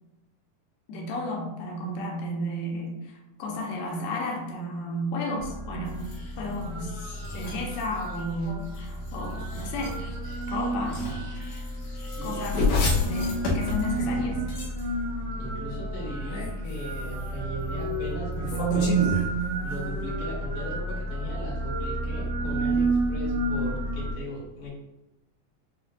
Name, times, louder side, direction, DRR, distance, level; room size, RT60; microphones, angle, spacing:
voice 1, 0.9-6.1 6.4-10.0 10.5-11.1 12.2-12.6 13.0-14.4, left 1 dB, 90° left, -1 dB, 2.5 m, -33 dB
sound 1, 5.4-24.1, right 2 dB, 75° right, 1.8 m, -31 dB
sound 2, 5.9-15.0 16.1-17.3 18.3-20.0, left 3 dB, 70° left, 1.7 m, -32 dB
voice 2, 12.0-12.8 15.3-19.2 19.5-24.7, equal, 50° left, -7 dB, 1.9 m, -38 dB
7.3 x 2.4 x 2.4 m, 1.0 s
omnidirectional pair, 4.1 m